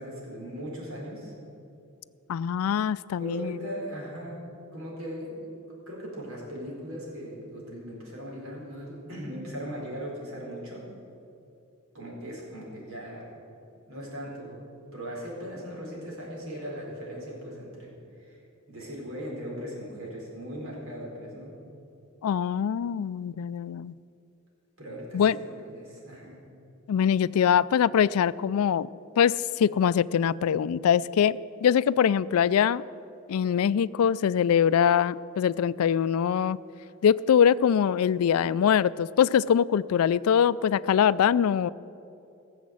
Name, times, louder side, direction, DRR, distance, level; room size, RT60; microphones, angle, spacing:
voice 1, 0.0-1.3 3.2-4.4 4.7-5.5 5.9-10.9 11.9-13.4 13.9-14.6 14.9-18.4 18.7-21.5 24.8-26.4, equal, 75° right, -3 dB, 4.2 m, -38 dB
voice 2, 2.3-3.6 22.2-23.9 25.1-25.4 26.9-28.9 29.2-32.8 33.3-36.6 37.0-41.7, left 8 dB, 90° left, 19 dB, 0.3 m, -23 dB
17.0 x 7.3 x 7.7 m, 2.7 s
head